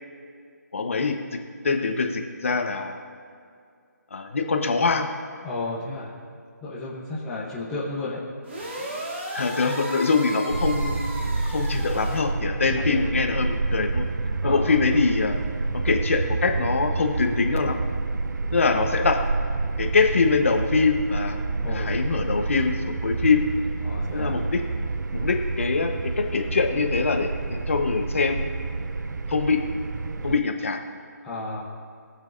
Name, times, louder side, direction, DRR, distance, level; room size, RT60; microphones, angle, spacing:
voice 1, 0.7-1.1 1.6-3.0 4.1-5.1 9.3-14.1 14.4-15.4 15.8-17.8 18.5-19.2 19.8-21.4 21.7-23.5 24.1-24.6 25.1-25.9 26.2-28.6 29.3-29.6 30.2-30.8, left 4 dB, 45° left, 4 dB, 1.1 m, -24 dB
voice 2, 5.4-6.1 6.6-8.2 12.7-13.0 14.4-14.7 21.6-21.9 23.8-24.4 31.2-31.6, left 2 dB, 5° left, -9 dB, 1.0 m, -33 dB
sound 1, 8.4-12.2, right 1 dB, 40° right, 2.0 m, -35 dB
sound 2, 10.5-30.4, right 3 dB, 75° right, 0.6 m, -28 dB
22.0 x 7.3 x 2.7 m, 2.3 s
hypercardioid pair, 175°, 10 cm